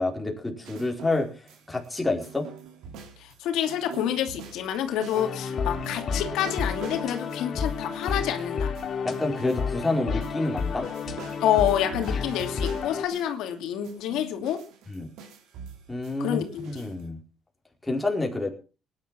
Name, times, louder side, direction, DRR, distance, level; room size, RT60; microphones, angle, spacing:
voice 1, 0.0-2.5 9.0-10.9 14.9-15.1 15.9-17.2 17.8-18.5, left 2 dB, 10° left, 0 dB, 4.6 m, -28 dB
sound 1, 0.6-1.9 2.2-9.9 10.2-13.5 13.8-17.0, right 5 dB, 80° right, 4.5 m, -44 dB
voice 2, 3.2-8.7 11.4-14.6 16.2-16.8, left 10 dB, 80° left, 6 dB, 2.6 m, -28 dB
sound 2, 5.1-13.0, left 5 dB, 45° left, 3.0 m, -31 dB
19.0 x 11.0 x 6.0 m, 0.36 s
cardioid pair, 130°, 0 cm